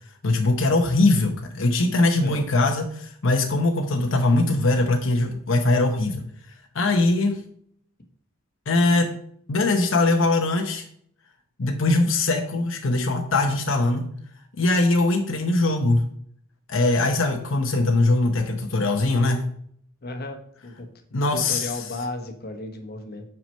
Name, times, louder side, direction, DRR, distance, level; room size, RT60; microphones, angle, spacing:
voice 1, 0.2-6.2 6.7-7.4 8.7-9.2 9.5-10.8 11.6-14.1 14.6-16.1 16.7-19.5 21.1-21.7, left 2 dB, 80° left, 4 dB, 0.9 m, -21 dB
voice 2, 2.1-2.4 20.0-20.9 21.3-23.3, left 2 dB, 50° left, 5 dB, 1.1 m, -34 dB
6.0 x 5.9 x 5.4 m, 0.65 s
head